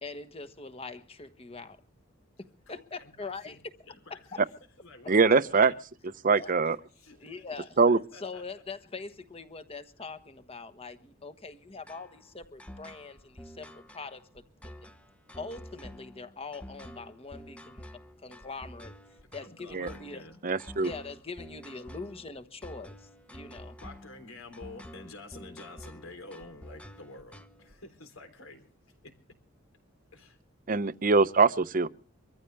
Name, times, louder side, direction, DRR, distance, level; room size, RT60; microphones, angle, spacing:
voice 1, 0.0-1.8 2.4-3.7 4.1-4.4 6.4-6.5 7.2-7.8 8.1-14.7 15.4-17.9 18.2-18.9 19.3-20.2 20.8-23.8, left 4 dB, 30° left, 1.2 m, -43 dB
voice 2, 2.7-4.3 4.8-5.8 7.0-7.3 7.9-8.4 19.2-20.4 23.8-28.7 29.0-29.2 30.1-30.4, left 2 dB, 85° left, 3.6 m, -49 dB
voice 3, 5.1-5.7 6.2-6.8 7.8-8.0 19.7-19.9 20.4-20.9 30.7-31.9, right 4 dB, 40° right, 0.7 m, -22 dB
sound 1, 11.9-27.7, equal, 5° left, 0.9 m, -48 dB
24.5 x 14.5 x 3.3 m
head